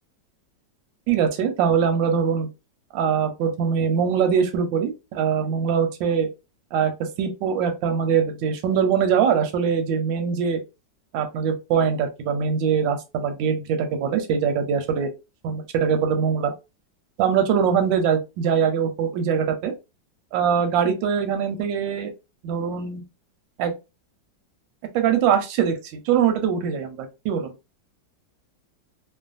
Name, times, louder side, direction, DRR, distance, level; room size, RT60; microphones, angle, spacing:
voice 1, 1.1-2.5 2.9-6.3 6.7-10.6 11.1-15.1 15.4-16.5 17.2-19.7 20.3-22.1 22.4-23.0 23.6-23.7 24.9-27.5, right 7 dB, 85° right, 1.3 m, -22 dB
3.1 x 2.1 x 2.4 m
omnidirectional pair, 2.0 m